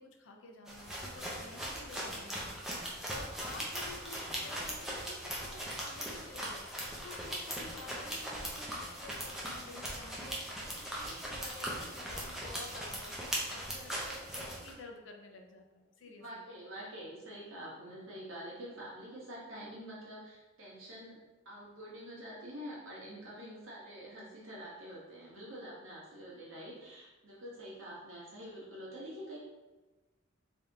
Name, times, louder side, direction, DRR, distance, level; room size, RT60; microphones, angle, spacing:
voice 1, 0.0-10.6 10.9-16.4, left 3 dB, 65° left, 3 dB, 0.6 m, -51 dB
sound 1, 0.7-14.7, equal, ahead, 0.6 m, -40 dB
voice 2, 16.2-21.2 21.4-29.4, equal, 85° right, -6 dB, 1.5 m, -46 dB
3.4 x 2.9 x 3.5 m, 1.2 s
head